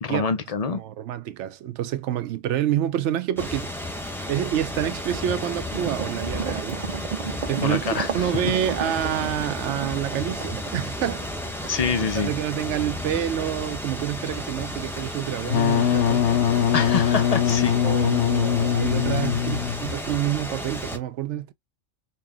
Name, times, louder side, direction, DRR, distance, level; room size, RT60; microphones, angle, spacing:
voice 1, 0.0-0.8 7.6-8.3 11.7-12.3 16.7-17.7, left 5 dB, 45° left, 0.5 m, -26 dB
voice 2, 0.6-3.7 4.3-6.8 7.5-11.3 11.8-12.0 12.2-16.3 17.8-21.5, right 11 dB, 75° right, 0.9 m, -28 dB
sound 1, 3.4-21.0, left 1 dB, ahead, 0.6 m, -33 dB
sound 2, 5.7-12.0 12.4-12.5, right 7 dB, 55° right, 0.5 m, -34 dB
Wind instrument woodwind instrument, 15.4-20.0, left 9 dB, 75° left, 0.9 m, -22 dB
4.4 x 2.2 x 3.5 m
omnidirectional pair, 1.3 m